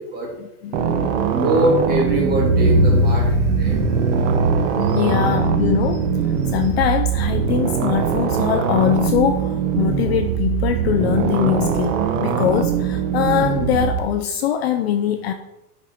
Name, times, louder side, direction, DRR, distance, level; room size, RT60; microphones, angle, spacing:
voice 1, 0.4-1.3 4.9-6.0 6.5-15.3, left 10 dB, 45° left, 7 dB, 0.5 m, -22 dB
sound 1, 0.7-14.0, right 8 dB, 55° right, 1.0 m, -22 dB
voice 2, 1.3-3.9 4.9-5.0, right 1 dB, 20° right, -1 dB, 2.1 m, -22 dB
sound 2, 1.7-12.6 12.9-13.0, equal, 75° right, 2.6 m, -24 dB
9.2 x 5.3 x 4.3 m, 0.89 s
supercardioid pair, 155°, 46 cm